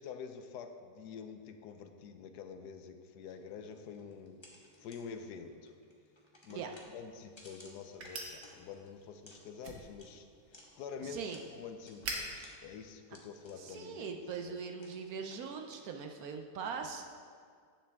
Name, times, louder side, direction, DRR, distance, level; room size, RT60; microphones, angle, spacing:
voice 1, 0.0-4.4 4.8-5.7 6.4-6.6 6.9-11.2 11.5-14.1 14.4-14.5, left 6 dB, 75° left, 7 dB, 1.1 m, -47 dB
sound 1, 3.2-16.3, left 1 dB, 20° left, 0.9 m, -61 dB
sound 2, 6.6-13.8, right 2 dB, 85° right, 1.7 m, -48 dB
voice 2, 11.0-11.4 13.6-17.1, right 5 dB, 70° right, 4 dB, 1.0 m, -41 dB
9.8 x 7.2 x 3.5 m, 2.1 s
omnidirectional pair, 1.8 m